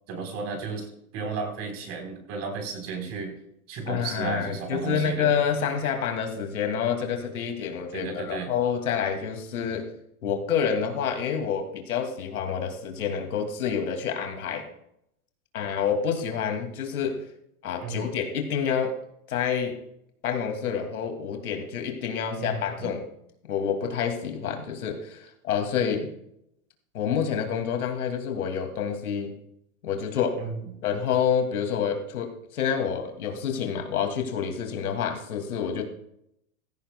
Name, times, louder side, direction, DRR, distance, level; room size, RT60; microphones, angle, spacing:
voice 1, 0.1-0.9 1.1-3.3 3.7-5.3 7.9-8.5 17.8-18.1 22.4-22.9 30.4-30.6, right 4 dB, 35° right, 3 dB, 3.8 m, -33 dB
voice 2, 3.9-9.9 10.2-14.6 15.5-17.2 17.6-19.0 19.3-19.8 20.2-23.1 23.4-26.1 26.9-29.3 29.8-30.4 30.8-35.8, left 7 dB, 85° left, 4 dB, 2.4 m, -28 dB
16.0 x 15.0 x 2.2 m, 0.76 s
hypercardioid pair, 135°, 42 cm